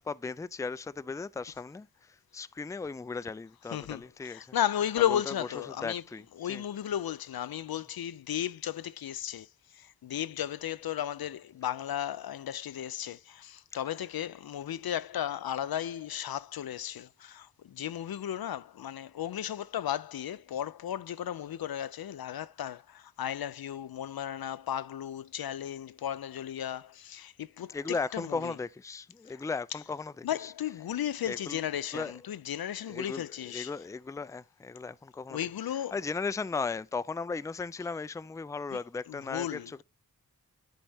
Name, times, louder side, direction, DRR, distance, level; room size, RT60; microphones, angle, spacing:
voice 1, 0.0-4.5 5.1-5.5 5.8-6.6 27.7-30.5 31.3-31.6 31.9-32.2 32.9-35.4 35.9-39.8, left 4 dB, 10° left, 0.3 m, -36 dB
voice 2, 3.7-6.0 6.4-9.5 9.7-27.8 28.1-28.5 30.2-33.7 35.3-35.9 38.7-38.8 39.1-39.8, left 10 dB, 85° left, 0.5 m, -34 dB
10.5 x 4.1 x 3.4 m
wide cardioid pair, 60°, 35 cm